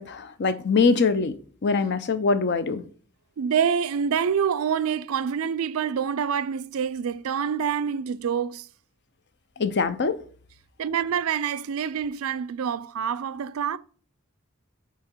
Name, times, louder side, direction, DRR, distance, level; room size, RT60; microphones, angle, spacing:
voice 1, 0.0-1.3 1.6-2.8 9.6-10.2, left 4 dB, 55° left, 0.6 m, -23 dB
voice 2, 3.4-8.7 10.8-13.8, right 7 dB, 90° right, 0.4 m, -26 dB
8.3 x 2.9 x 4.4 m
head